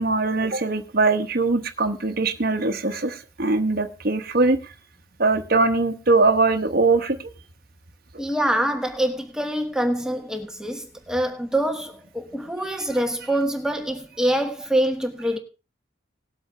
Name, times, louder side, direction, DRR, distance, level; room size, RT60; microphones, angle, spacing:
voice 1, 0.0-4.6 5.2-7.2, right 3 dB, 55° right, 1.1 m, -21 dB
voice 2, 8.2-15.4, right 1 dB, 5° right, 1.2 m, -25 dB
19.0 x 7.9 x 3.4 m
head